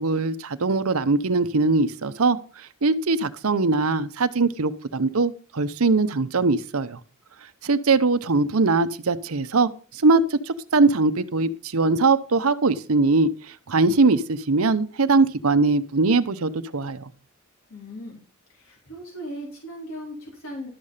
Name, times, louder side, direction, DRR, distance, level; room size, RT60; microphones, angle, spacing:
voice 1, 0.0-7.0 7.6-17.1, right 3 dB, 75° right, 11 dB, 0.8 m, -21 dB
voice 2, 17.7-18.2 18.5-20.7, equal, 65° left, -1 dB, 3.8 m, -37 dB
12.0 x 6.6 x 5.6 m, 0.38 s
head